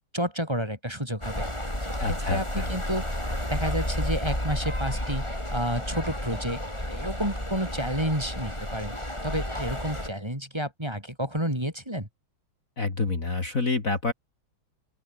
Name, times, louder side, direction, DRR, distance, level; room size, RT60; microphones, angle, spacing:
voice 1, 0.1-1.4 1.9-3.1 3.5-5.3 5.5-6.6 6.9-8.9 9.2-12.1, equal, 10° right, 6.7 m, -30 dB
sound 1, 1.2-10.1, left 1 dB, 15° left, 7.4 m, -31 dB
voice 2, 2.0-2.7 12.8-14.1, left 3 dB, 40° left, 3.2 m, -27 dB
open air
omnidirectional pair, 2.2 m